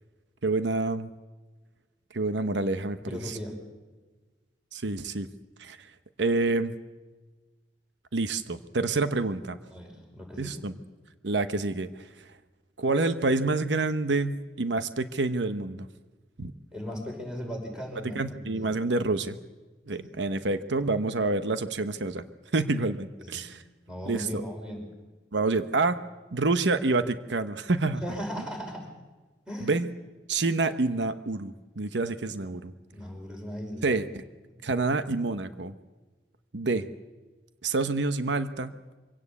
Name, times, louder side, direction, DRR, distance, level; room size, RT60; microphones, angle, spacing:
voice 1, 0.4-1.1 2.1-3.4 4.7-5.3 5.6-5.9 6.2-6.7 8.1-9.6 10.4-10.8 11.2-12.3 12.8-15.9 16.4-16.5 18.1-19.4 19.9-22.2 22.5-23.6 24.1-24.4 25.3-26.0 26.3-28.0 29.6-29.9 30.3-32.7 33.8-34.2 34.6-35.7 36.5-36.9 37.6-39.0, right 3 dB, 90° right, 11 dB, 0.9 m, -28 dB
voice 2, 3.1-3.6 9.7-10.7 16.7-18.8 19.0-19.2 20.0-20.1 23.2-23.4 23.9-24.8 27.9-28.9 29.5-29.7 32.9-34.0 34.5-34.6, equal, 5° right, 0 dB, 5.3 m, -38 dB
24.5 x 17.0 x 8.4 m, 1.3 s
head